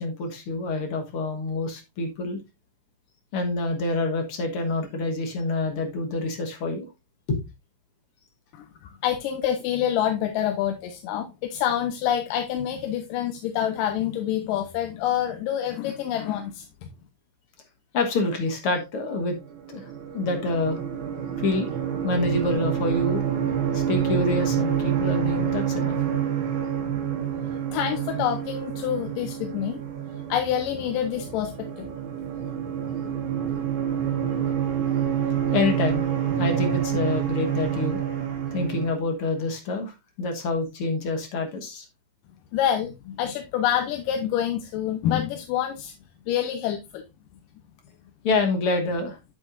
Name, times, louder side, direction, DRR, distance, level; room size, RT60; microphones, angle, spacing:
voice 1, 0.0-2.4 3.3-6.9 7.3-7.4 8.8-8.9 17.9-19.4 19.7-20.8 21.4-21.7 22.0-23.2 23.7-26.0 35.5-36.0 36.4-38.0 38.5-41.9 48.2-49.2, left 2 dB, 55° left, 1.9 m, -27 dB
voice 2, 9.0-16.7 27.7-29.8 30.3-31.9 42.5-45.9 46.3-47.0, left 10 dB, 90° left, 2.4 m, -27 dB
sound 1, 19.4-38.9, right 9 dB, 70° right, 3.1 m, -28 dB
8.5 x 7.8 x 2.5 m
omnidirectional pair, 3.7 m